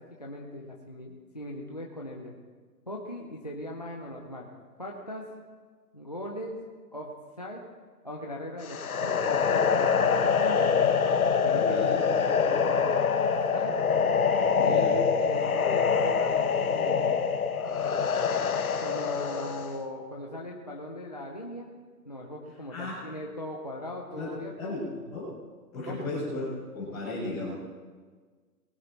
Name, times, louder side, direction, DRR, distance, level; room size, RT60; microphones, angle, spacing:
voice 1, 0.2-2.3 2.9-4.5 4.8-5.3 5.9-6.6 6.9-7.1 7.4-7.6 8.0-10.7 11.4-13.7 14.6-17.2 18.8-21.7 22.0-24.7 25.9-26.1, left 1 dB, 25° left, -1 dB, 0.6 m, -39 dB
sound 1, 8.6-19.8, left 6 dB, 60° left, 1.1 m, -25 dB
voice 2, 11.5-12.0 14.5-15.0 22.7-22.9 24.1-24.3 24.6-25.3 25.7-27.5, left 2 dB, 5° left, -15 dB, 1.1 m, -35 dB
20.0 x 11.0 x 4.3 m, 1.5 s
hypercardioid pair, 175°, 49 cm